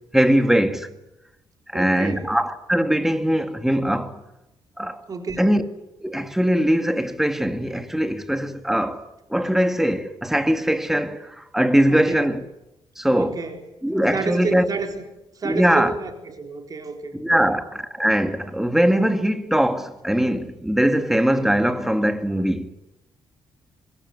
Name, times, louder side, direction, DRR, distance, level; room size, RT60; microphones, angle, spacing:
voice 1, 0.1-0.9 1.7-4.2 4.8-5.0 5.4-5.7 6.0-12.4 13.0-13.4 13.8-14.7 15.4-15.9 17.2-22.7, equal, 5° right, 2.1 m, -21 dB
voice 2, 1.7-2.3 5.1-5.5 11.9-12.3 13.1-13.6 14.1-15.0 15.3-17.5, right 4 dB, 40° right, 4.2 m, -30 dB
25.0 x 21.5 x 9.7 m
cardioid pair, 115°, 9 cm